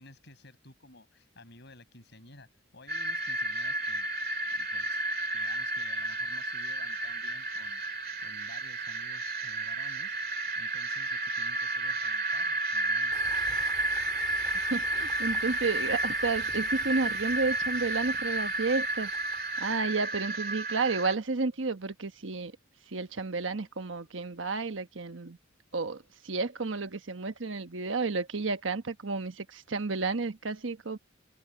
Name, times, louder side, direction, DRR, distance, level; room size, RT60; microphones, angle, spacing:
voice 1, 0.0-4.1 4.5-5.1 5.3-13.2, left 2 dB, 60° left, 7.6 m, -53 dB
sound 1, 2.9-21.1, right 2 dB, 50° right, 2.2 m, -32 dB
sound 2, 13.1-20.0, equal, ahead, 5.2 m, -51 dB
voice 2, 14.7-19.1 19.6-22.5 22.9-25.4 25.7-31.0, right 3 dB, 70° right, 1.2 m, -31 dB
head